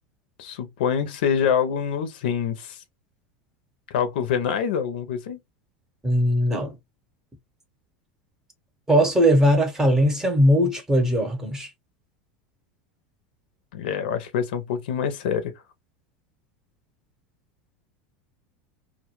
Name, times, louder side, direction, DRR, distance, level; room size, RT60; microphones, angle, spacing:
voice 1, 0.4-2.8 3.9-5.4 13.7-15.5, left 7 dB, 80° left, 0.5 m, -25 dB
voice 2, 6.0-6.8 8.9-11.7, equal, 10° right, 0.7 m, -20 dB
2.2 x 2.1 x 2.9 m
supercardioid pair, 130°, 5 cm